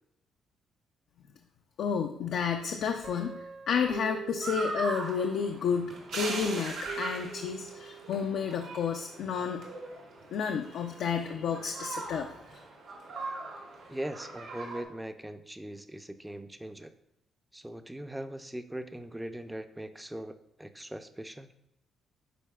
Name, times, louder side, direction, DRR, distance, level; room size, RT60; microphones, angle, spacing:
voice 1, 1.8-3.4 3.7-9.6 10.3-12.3, left 6 dB, 75° left, 4 dB, 0.4 m, -31 dB
Guitar, 3.0-5.5 6.2-8.1, right 8 dB, 60° right, 1.2 m, -43 dB
sound 1, 4.4-14.8, right 3 dB, 85° right, 1.8 m, -40 dB
voice 2, 13.9-16.9 17.5-21.5, right 1 dB, 10° right, 9 dB, 0.4 m, -40 dB
10.0 x 4.1 x 2.3 m, 0.87 s
cardioid pair, 90°, 0 cm